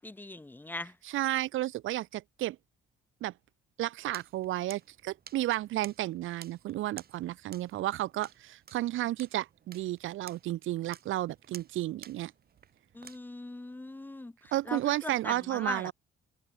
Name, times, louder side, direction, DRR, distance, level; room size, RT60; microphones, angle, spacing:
voice 1, 0.0-1.0 12.9-15.9, left 2 dB, 10° left, 0.6 m, -40 dB
voice 2, 1.0-2.6 3.2-3.3 3.8-12.3 14.5-15.9, right 15 dB, 85° right, 1.9 m, -32 dB
sound 1, 4.1-13.2, right 8 dB, 50° right, 2.3 m, -53 dB
cardioid pair, 90°, 20 cm